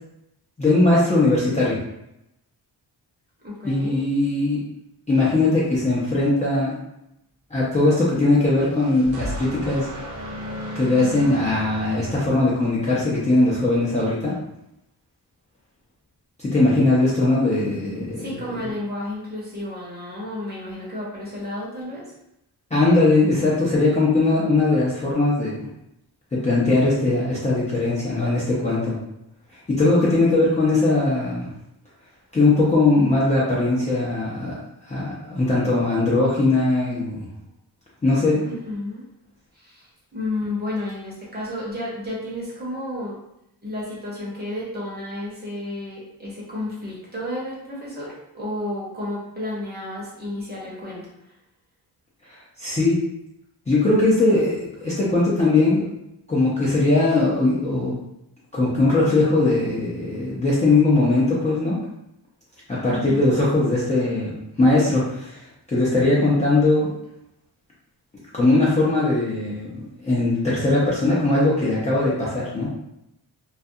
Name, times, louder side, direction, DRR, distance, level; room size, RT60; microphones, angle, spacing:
voice 1, 0.6-1.8 3.6-4.6 5.1-6.8 7.5-9.9 10.7-14.3 16.4-18.3 22.7-25.7 26.3-29.0 29.7-31.5 32.3-34.6 34.8-37.3 38.0-38.4 52.3-53.0 53.7-55.9 56.3-58.0 58.5-61.8 62.7-65.4 65.7-66.9 68.3-69.7 70.0-72.7, left 2 dB, 20° left, -8 dB, 0.5 m, -20 dB
voice 2, 3.4-4.0 18.2-22.1 38.4-39.1 39.5-43.2 43.6-51.3 62.9-63.2, left 1 dB, 25° right, -6 dB, 0.9 m, -32 dB
sound 1, 8.5-13.0, equal, 45° right, 0.6 m, -34 dB
2.4 x 2.2 x 2.6 m, 0.84 s
wide cardioid pair, 135°, 40 cm